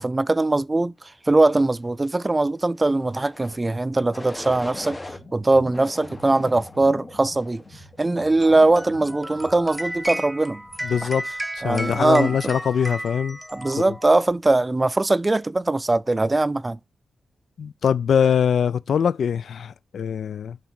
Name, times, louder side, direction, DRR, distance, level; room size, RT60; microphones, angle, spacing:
voice 1, 0.0-5.0 5.3-7.6 8.0-10.6 11.0-11.1 11.6-12.5 13.5-16.8, right 2 dB, 30° right, 0.3 m, -21 dB
sound 1, 3.2-3.6 4.1-5.2 5.7-6.8 7.3-7.8, left 2 dB, 30° left, 0.9 m, -40 dB
sound 2, 3.8-11.1, left 2 dB, 55° left, 2.3 m, -44 dB
sound 3, 8.4-14.2, equal, 5° right, 1.0 m, -34 dB
voice 2, 10.8-11.2 11.6-13.4 13.8-13.9 17.6-20.6, left 7 dB, 75° left, 0.3 m, -22 dB
5.6 x 5.2 x 4.3 m
supercardioid pair, 40°, 0 cm